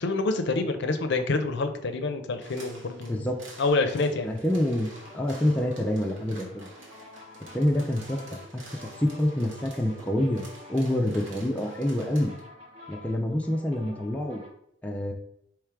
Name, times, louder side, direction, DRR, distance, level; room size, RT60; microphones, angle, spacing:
voice 1, 0.0-3.3 3.6-4.3, left 3 dB, 60° left, 8 dB, 0.5 m, -27 dB
sound 1, 2.4-12.4, right 1 dB, 70° right, 1.3 m, -49 dB
voice 2, 3.1-3.4 4.2-6.7 7.5-8.2 8.5-12.3 12.9-14.4 14.8-15.1, left 1 dB, 5° left, 0 dB, 0.3 m, -27 dB
sound 2, 4.9-14.5, left 2 dB, 35° right, 1.0 m, -49 dB
3.5 x 3.2 x 4.6 m, 0.75 s
head